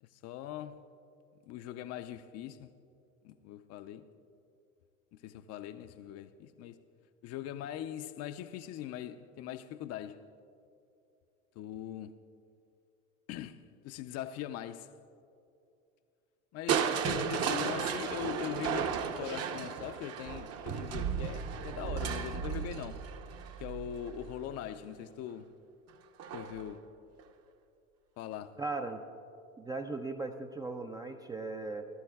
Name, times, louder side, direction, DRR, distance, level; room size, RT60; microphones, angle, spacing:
voice 1, 0.0-0.8 1.5-2.7 3.2-4.1 5.1-6.8 7.2-10.3 11.6-12.2 13.3-14.9 16.5-23.1 23.6-25.5 26.3-26.9 28.2-28.6, left 11 dB, 40° left, 0.5 m, -41 dB
Crushing, 16.7-24.6 26.2-26.7 27.2-27.3, right 7 dB, 40° right, 0.8 m, -34 dB
voice 2, 28.6-29.0 29.6-31.8, right 3 dB, 10° right, 0.4 m, -38 dB
20.0 x 13.0 x 2.3 m
hypercardioid pair, 80°, 41 cm